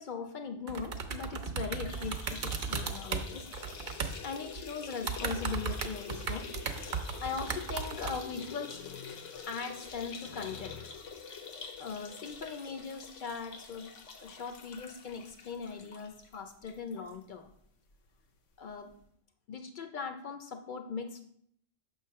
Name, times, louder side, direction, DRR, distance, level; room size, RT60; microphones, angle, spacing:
voice 1, 0.0-4.0 4.2-6.5 7.2-11.1 11.8-13.9 14.2-17.5 18.6-18.9 19.5-21.2, left 5 dB, 60° left, 6 dB, 0.5 m, -40 dB
sound 1, 0.7-4.2 4.5-4.6 4.9-8.2, right 5 dB, 55° right, 0.7 m, -35 dB
Peeing into toilet, 1.8-17.1 17.5-17.6 17.9-18.0 19.0-19.1, left 5 dB, 90° left, 1.1 m, -46 dB
6.7 x 3.1 x 5.6 m, 0.70 s
omnidirectional pair, 1.2 m